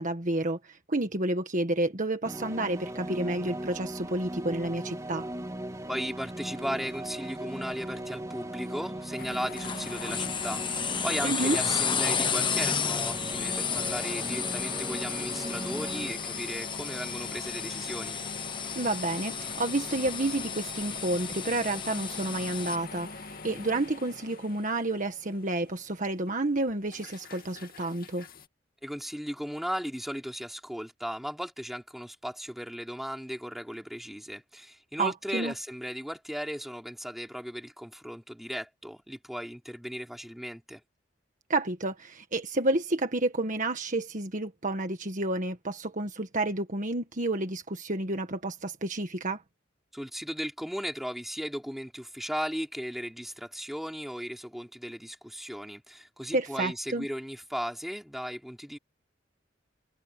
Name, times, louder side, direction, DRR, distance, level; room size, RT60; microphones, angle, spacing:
voice 1, 0.0-5.3 11.2-11.6 18.7-28.2 35.0-35.5 41.5-49.4 56.3-57.1, right 2 dB, 45° right, 1.6 m, -30 dB
sound 1, 2.2-16.1, right 1 dB, 15° right, 3.0 m, -38 dB
voice 2, 5.9-18.2 28.8-40.8 49.9-58.8, equal, ahead, 4.1 m, -36 dB
sound 2, 9.2-28.5, left 4 dB, 50° left, 2.5 m, -43 dB
sound 3, 9.6-22.8, left 6 dB, 25° left, 1.2 m, -33 dB
head